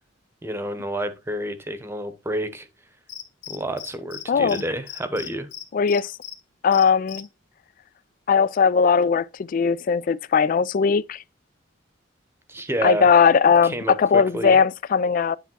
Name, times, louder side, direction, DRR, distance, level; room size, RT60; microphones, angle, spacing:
voice 1, 0.4-2.7 3.5-5.5 12.5-13.1 13.6-14.6, right 1 dB, 15° right, 0.9 m, -29 dB
Cricket, 3.1-4.2 4.5-4.6 4.9-6.3 6.7-7.2, left 10 dB, 65° left, 2.2 m, -36 dB
voice 2, 4.3-4.6 5.7-6.2 6.6-7.3 8.3-11.2 12.8-15.4, left 6 dB, 45° left, 0.3 m, -19 dB
10.0 x 3.4 x 4.6 m
head